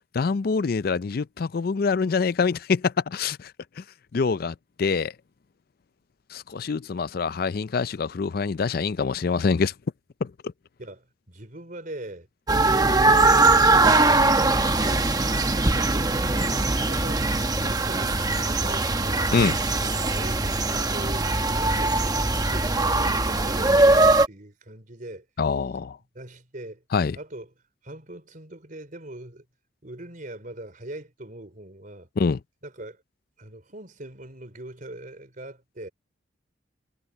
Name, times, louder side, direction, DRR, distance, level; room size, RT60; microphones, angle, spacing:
voice 1, 0.1-3.5 3.8-3.9 4.1-5.1 6.3-9.7 10.2-10.3 19.3-19.6 25.4-26.0 26.9-27.2 32.2-32.4, left 5 dB, 50° left, 0.4 m, -25 dB
voice 2, 10.8-12.3 12.6-15.1 15.4-17.3 17.6-19.3 20.1-25.5 26.1-26.8 27.1-27.5 27.8-29.5 29.8-32.1 32.6-33.0 33.4-35.9, right 1 dB, 45° right, 4.0 m, -41 dB
sound 1, 12.5-24.3, right 2 dB, 20° right, 1.0 m, -21 dB
head